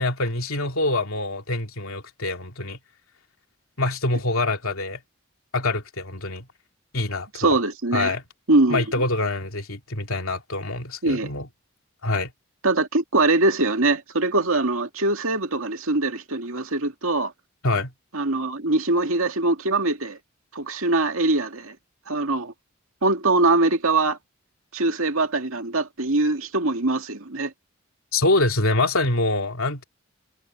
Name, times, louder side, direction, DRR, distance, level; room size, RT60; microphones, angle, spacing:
voice 1, 0.0-2.8 3.8-5.0 5.5-6.5 6.9-7.6 7.9-8.2 8.7-11.5 12.0-12.3 17.6-17.9 28.1-29.8, left 2 dB, 80° left, 3.0 m, -25 dB
voice 2, 7.4-8.1 8.5-8.8 11.0-11.3 12.6-17.3 18.1-20.2 20.5-21.8 22.1-22.5 23.0-24.2 24.7-27.5, right 2 dB, 75° right, 2.2 m, -22 dB
head